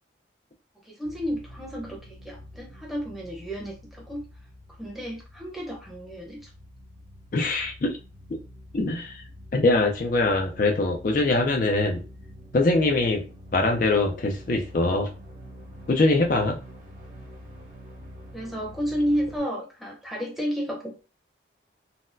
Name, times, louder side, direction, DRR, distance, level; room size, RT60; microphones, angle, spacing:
voice 1, 0.8-4.2 4.8-6.5 18.3-21.0, equal, ahead, -3 dB, 0.8 m, -31 dB
sound 1, 1.0-19.4, equal, 45° right, 0.8 m, -46 dB
voice 2, 7.3-8.0 8.7-9.2 9.5-12.0 12.5-13.2 13.5-15.1 15.9-16.6, left 2 dB, 50° left, 2 dB, 0.4 m, -23 dB
4.0 x 2.1 x 2.6 m, 0.33 s
head